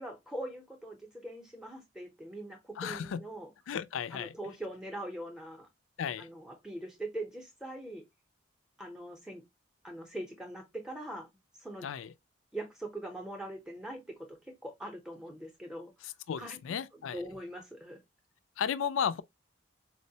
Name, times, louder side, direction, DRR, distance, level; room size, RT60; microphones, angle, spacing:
voice 1, 0.0-3.5 4.1-5.7 6.2-8.0 8.8-9.4 9.8-11.3 11.6-11.9 12.5-16.1 16.4-16.6 16.9-18.0, right 1 dB, 5° right, 0.6 m, -42 dB
voice 2, 2.8-3.2 3.7-4.3 6.0-6.3 11.8-12.1 16.3-17.2 18.6-19.2, left 7 dB, 85° left, 0.3 m, -34 dB
4.5 x 2.1 x 2.7 m
head